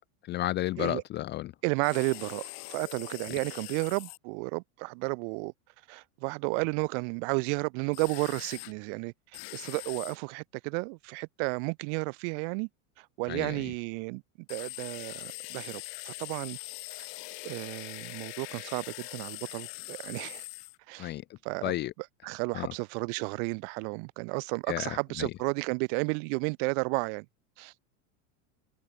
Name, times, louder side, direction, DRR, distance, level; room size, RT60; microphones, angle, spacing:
voice 1, 0.3-1.5 13.3-13.6 21.0-21.2 21.6-21.9 22.5-22.7 24.7-25.3, left 15 dB, 30° left, 0.4 m, -32 dB
voice 2, 1.6-5.5 5.9-9.1 9.5-12.7 13.0-14.2 14.5-16.6 17.0-17.1 17.4-20.4 20.9-21.1 21.4-27.2 27.6-27.7, right 40 dB or more, 60° right, 1.2 m, -32 dB
sound 1, 1.8-4.2 7.9-8.7 9.3-10.2 14.5-20.8, left 37 dB, 60° left, 8.0 m, -42 dB
supercardioid pair, 115°, 41 cm